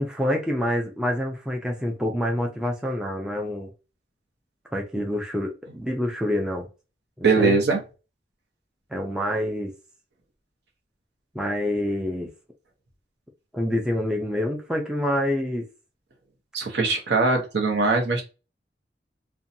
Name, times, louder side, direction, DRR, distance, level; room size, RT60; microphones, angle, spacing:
voice 1, 0.0-3.7 4.7-6.7 7.2-7.6 8.9-9.7 11.3-12.3 13.5-15.7, equal, 5° right, 0.4 m, -27 dB
voice 2, 7.2-7.8 16.5-18.3, right 4 dB, 70° right, 0.7 m, -21 dB
2.5 x 2.2 x 2.6 m
head